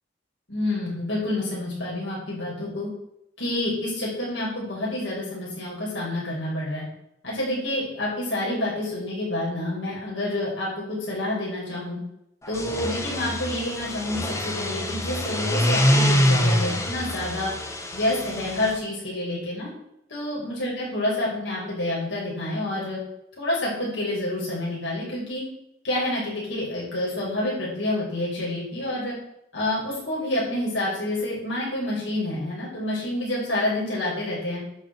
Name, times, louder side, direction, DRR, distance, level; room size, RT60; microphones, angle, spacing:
voice 1, 0.5-2.9 3.4-6.8 7.2-12.0 12.5-17.5 17.9-19.7 20.1-23.0 23.4-25.4 25.8-29.2 29.5-34.6, left 1 dB, 85° left, -5 dB, 5.7 m, -28 dB
sound 1, 12.5-18.7, equal, 15° left, 1.3 m, -25 dB
11.0 x 5.7 x 8.2 m, 0.79 s
head